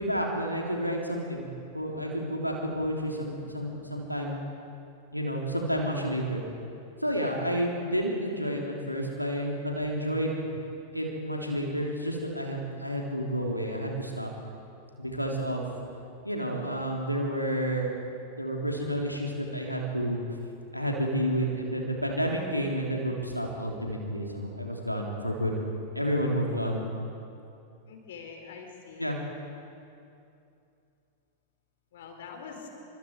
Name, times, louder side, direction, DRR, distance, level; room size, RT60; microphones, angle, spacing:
voice 1, 0.0-1.5 1.7-4.4 5.1-6.4 7.0-10.5 10.9-14.3 15.0-15.7 16.2-17.9 18.3-20.2 20.7-25.6 25.9-26.8 29.0-29.2, equal, 90° left, 0 dB, 3.4 m, -30 dB
voice 2, 27.9-29.1 31.9-32.7, left 5 dB, 60° left, 3 dB, 4.4 m, -44 dB
29.5 x 25.5 x 4.8 m, 2.6 s
figure-of-eight pair, 90°, 0 cm